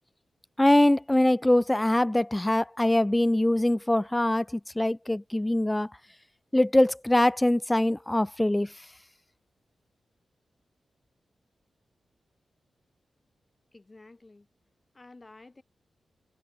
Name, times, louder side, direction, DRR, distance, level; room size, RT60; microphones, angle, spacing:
voice 1, 0.6-5.9 6.5-8.7, left 1 dB, 15° left, 0.3 m, -23 dB
voice 2, 13.7-14.5 14.9-15.6, left 2 dB, 30° left, 7.9 m, -51 dB
cardioid pair, 80°, 0 cm